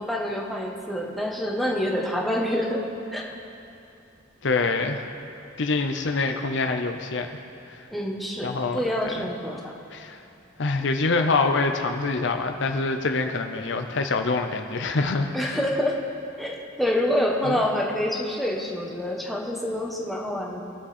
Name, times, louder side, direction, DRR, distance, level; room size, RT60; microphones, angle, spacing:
voice 1, 0.0-2.8 3.1-3.2 7.9-9.7 15.3-16.0 16.4-20.6, left 1 dB, ahead, -2 dB, 1.3 m, -27 dB
voice 2, 4.4-5.0 5.6-7.3 7.7-7.8 8.4-9.3 9.9-10.2 10.6-15.6 17.4-17.6, left 3 dB, 65° left, 5 dB, 0.7 m, -25 dB
21.5 x 7.3 x 4.3 m, 2.7 s
head